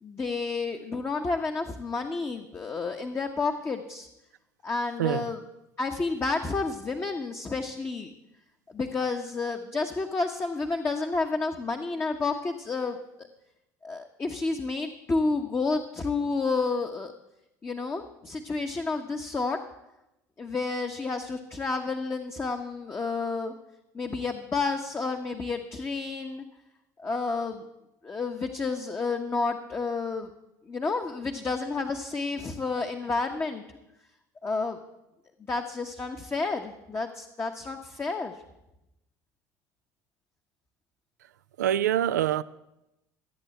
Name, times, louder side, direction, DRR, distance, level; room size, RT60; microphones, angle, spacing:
voice 1, 0.0-4.1 4.6-5.4 5.8-8.1 8.7-13.3 13.8-17.1 17.6-19.6 20.4-23.5 23.9-26.4 27.0-27.6 28.0-30.3 30.7-33.6 34.4-34.8 35.5-38.3, left 3 dB, 25° left, 1.2 m, -30 dB
voice 2, 5.0-5.3 41.6-42.4, right 11 dB, 90° right, 0.4 m, -25 dB
15.0 x 8.6 x 7.8 m
hypercardioid pair, 75°, 9 cm